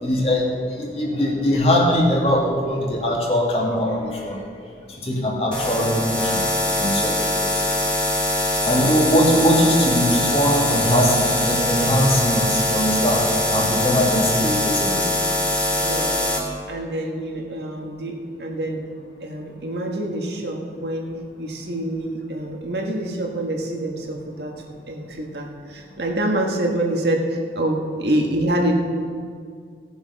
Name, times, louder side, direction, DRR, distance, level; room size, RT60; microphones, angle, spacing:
voice 1, 0.0-4.4 5.0-6.0 6.3-7.2 8.6-13.2 13.5-15.0, equal, 35° left, -2 dB, 2.1 m, -21 dB
sound 1, 5.5-16.4, left 1 dB, 5° left, 1.7 m, -22 dB
voice 2, 15.8-16.3 16.7-18.8 19.2-21.1 21.4-28.7, right 1 dB, 75° right, 1 dB, 1.6 m, -26 dB
17.0 x 7.0 x 5.4 m, 2.1 s
head